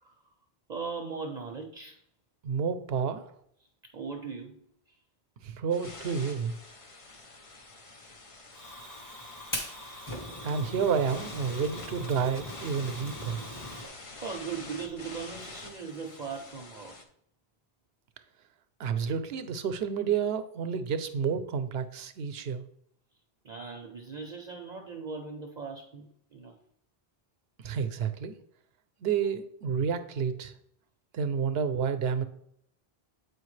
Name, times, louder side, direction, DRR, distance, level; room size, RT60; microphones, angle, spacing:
voice 1, 0.7-2.0 3.9-4.6 13.7-13.8 14.2-17.0 23.4-26.5, right 5 dB, 50° right, 3 dB, 0.7 m, -39 dB
voice 2, 2.4-3.2 5.4-6.5 10.4-13.4 18.8-22.6 27.6-28.3 29.0-30.5 31.1-32.2, right 6 dB, 75° right, 10 dB, 0.9 m, -30 dB
sound 1, 5.7-17.0, left 3 dB, 35° left, 0.7 m, -47 dB
Fire, 8.5-13.9, left 1 dB, 20° left, 1.1 m, -40 dB
8.0 x 5.0 x 3.2 m, 0.70 s
omnidirectional pair, 1.1 m